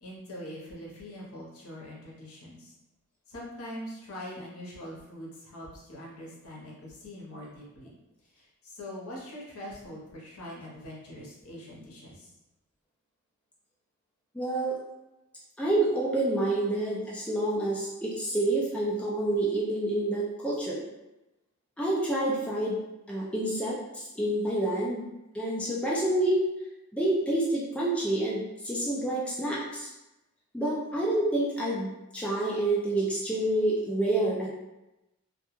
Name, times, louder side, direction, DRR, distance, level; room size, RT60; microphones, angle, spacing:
voice 1, 0.0-2.7 3.3-7.9 8.3-12.3, equal, 75° left, -4 dB, 0.8 m, -43 dB
voice 2, 14.3-14.8 15.6-20.8 21.8-22.7 23.1-25.1 25.3-26.5 26.9-29.9 30.5-34.5, right 1 dB, 5° left, -6 dB, 0.3 m, -28 dB
2.2 x 2.1 x 2.9 m, 0.97 s
head